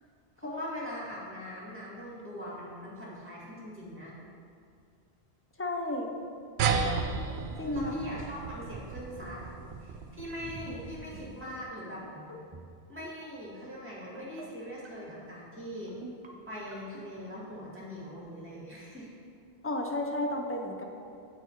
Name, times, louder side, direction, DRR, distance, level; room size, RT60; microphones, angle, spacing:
voice 1, 0.4-4.1 7.6-9.4 9.8-12.0 12.9-15.9 16.5-19.2, equal, 10° right, -6 dB, 1.9 m, -41 dB
voice 2, 5.6-6.1 7.6-8.2 19.6-20.8, left 1 dB, 20° left, 2 dB, 0.4 m, -32 dB
sound 1, 6.6-11.5, right 5 dB, 80° right, 0.8 m, -34 dB
sound 2, 10.3-10.8 11.1-11.4 12.2-12.7 13.0-13.3 14.0-14.4 14.8-15.2 15.9-16.3 16.7-17.0, right 3 dB, 30° right, 0.6 m, -46 dB
8.1 x 4.7 x 4.4 m, 2.5 s
omnidirectional pair, 1.1 m